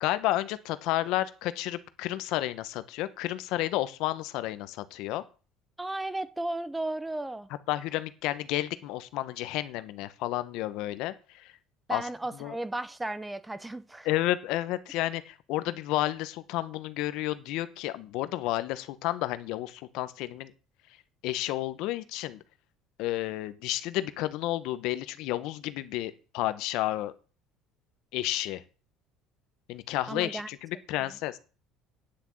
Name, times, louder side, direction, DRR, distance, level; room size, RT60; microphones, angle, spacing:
voice 1, 0.0-5.2 7.7-11.5 11.9-12.1 12.4-12.5 14.0-20.5 21.2-22.4 23.0-27.1 28.1-28.6 29.7-31.4, left 15 dB, 70° left, 1.0 m, -31 dB
voice 2, 5.8-7.5 11.9-14.1 30.1-30.5, right 2 dB, 10° right, 0.8 m, -34 dB
10.0 x 6.2 x 8.6 m
cardioid pair, 130°, 0 cm